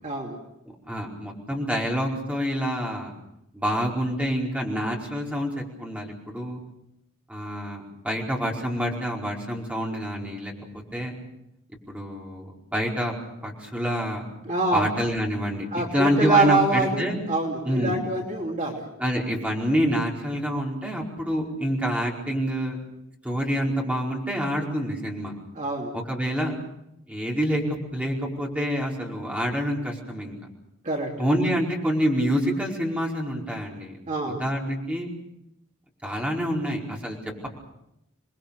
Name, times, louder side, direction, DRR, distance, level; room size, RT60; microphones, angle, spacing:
voice 1, 0.0-0.4 14.4-14.9 15.7-18.9 19.3-19.4 25.5-25.9 30.8-31.1 34.1-34.4, right 2 dB, 35° right, 0 dB, 3.2 m, -25 dB
voice 2, 0.9-3.1 3.5-6.6 7.3-11.1 11.9-13.1 13.4-14.2 14.7-17.2 17.6-18.0 19.0-22.8 23.2-25.3 25.9-26.5 27.1-27.6 27.9-30.4 31.2-34.0 34.2-35.1 36.0-37.5, equal, 5° right, -2 dB, 4.9 m, -27 dB
28.5 x 21.5 x 6.8 m, 0.82 s
head